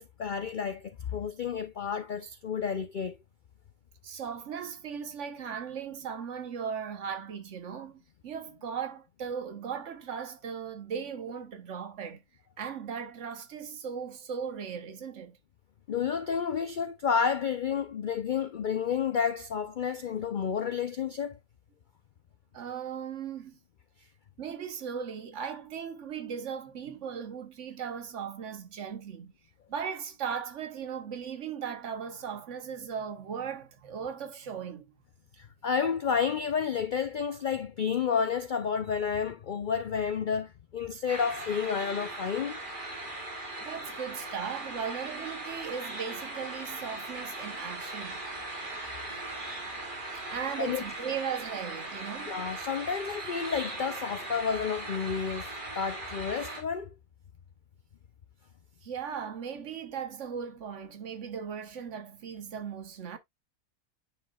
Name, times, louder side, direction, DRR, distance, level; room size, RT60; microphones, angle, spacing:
voice 1, 0.0-3.2 15.9-21.4 35.4-42.6 50.6-50.8 52.3-56.9, left 6 dB, 80° left, 0.4 m, -30 dB
voice 2, 4.0-12.2 12.6-15.4 22.5-23.6 24.4-29.3 29.7-34.9 43.6-48.2 50.3-52.5 58.8-63.2, right 7 dB, 55° right, 1.2 m, -37 dB
sound 1, 41.1-56.6, right 2 dB, 35° right, 2.2 m, -39 dB
9.3 x 5.0 x 2.3 m
omnidirectional pair, 1.6 m